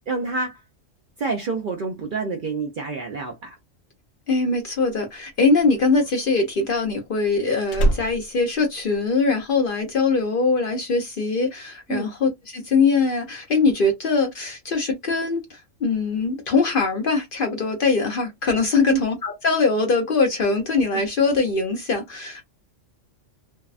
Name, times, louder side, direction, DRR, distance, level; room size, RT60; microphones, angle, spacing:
voice 1, 0.1-0.6 1.2-3.6 11.9-12.0 18.8-19.0, right 4 dB, 55° right, 0.6 m, -27 dB
voice 2, 4.3-22.4, left 4 dB, 55° left, 0.7 m, -22 dB
Slam, 4.7-9.5 9.8-10.2, right 1 dB, 80° left, 1.0 m, -28 dB
2.6 x 2.1 x 2.4 m
omnidirectional pair, 1.3 m